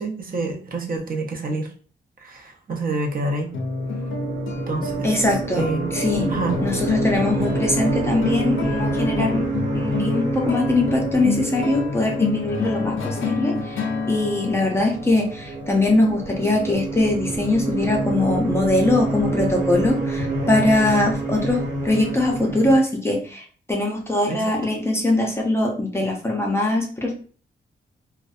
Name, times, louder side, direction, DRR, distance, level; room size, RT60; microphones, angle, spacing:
voice 1, 0.0-1.7 2.2-3.5 4.7-5.9 6.3-6.6 24.3-24.6, right 3 dB, 45° right, 2 dB, 0.5 m, -27 dB
sound 1, 3.4-22.8, right 2 dB, 60° right, 1.1 m, -28 dB
sound 2, 3.5-16.3, left 3 dB, 85° left, 0.4 m, -29 dB
voice 2, 5.0-5.6 5.9-6.3 6.6-9.5 9.7-27.1, left 2 dB, 15° left, 0 dB, 0.5 m, -22 dB
2.5 x 2.0 x 2.4 m, 0.42 s
wide cardioid pair, 140°, 20 cm